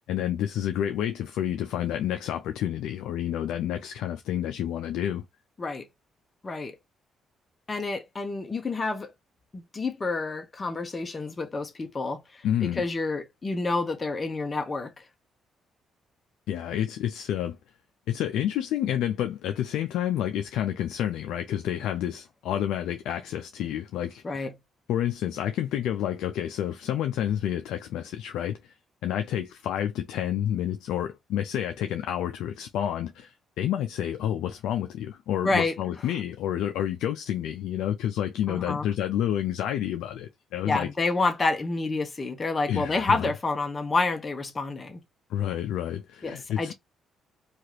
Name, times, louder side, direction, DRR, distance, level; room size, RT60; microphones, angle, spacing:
voice 1, 0.0-5.2 12.4-12.9 16.5-17.6 18.1-24.5 24.9-28.8 29.0-40.9 42.7-43.3 45.3-46.7, left 11 dB, 85° left, 0.3 m, -29 dB
voice 2, 6.4-6.8 7.7-9.1 9.5-15.0 24.2-24.5 35.4-35.7 38.5-38.9 40.6-45.0 46.2-46.7, left 3 dB, 30° left, 0.6 m, -29 dB
2.8 x 2.4 x 3.0 m
cardioid pair, 90°, 0 cm